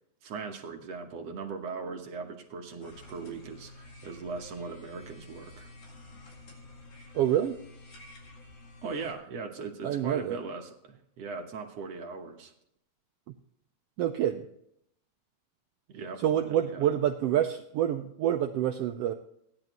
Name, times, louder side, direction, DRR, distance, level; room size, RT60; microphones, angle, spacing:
voice 1, 0.2-5.7 8.8-12.5 15.9-16.8, right 4 dB, 65° right, 4 dB, 2.0 m, -39 dB
sound 1, 2.8-9.2, left 2 dB, 80° left, 3.7 m, -50 dB
voice 2, 7.1-7.6 9.8-10.4 13.3-13.4 14.0-14.5 16.2-19.1, right 10 dB, 90° right, 6 dB, 1.4 m, -27 dB
16.0 x 11.0 x 3.0 m, 0.74 s
omnidirectional pair, 3.4 m